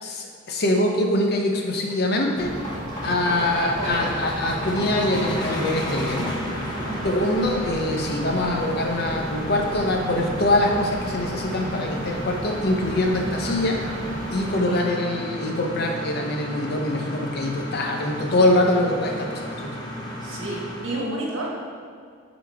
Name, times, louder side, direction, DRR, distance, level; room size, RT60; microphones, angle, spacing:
voice 1, 0.0-2.5 3.0-6.3 7.0-13.8 14.3-19.7, left 1 dB, 55° left, 2 dB, 0.8 m, -24 dB
sound 1, 1.7-21.1, left 1 dB, 20° left, 0.8 m, -34 dB
sound 2, 2.4-14.6, right 1 dB, 45° right, 0.9 m, -34 dB
voice 2, 3.4-4.1 6.8-7.1 14.7-15.2 20.2-21.7, right 1 dB, 80° right, -3 dB, 1.4 m, -31 dB
8.2 x 4.0 x 3.5 m, 2.2 s
head